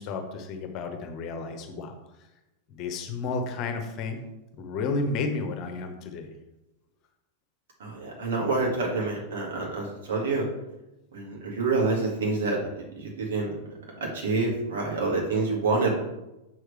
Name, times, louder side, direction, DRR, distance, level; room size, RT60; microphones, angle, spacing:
voice 1, 0.0-1.9 2.7-4.2 4.6-6.3, left 3 dB, 40° left, 5 dB, 1.1 m, -32 dB
voice 2, 7.8-10.5 11.1-13.6 14.0-16.0, right 3 dB, 60° right, -2 dB, 2.1 m, -27 dB
7.3 x 6.3 x 3.4 m, 0.97 s
figure-of-eight pair, 90°, 0 cm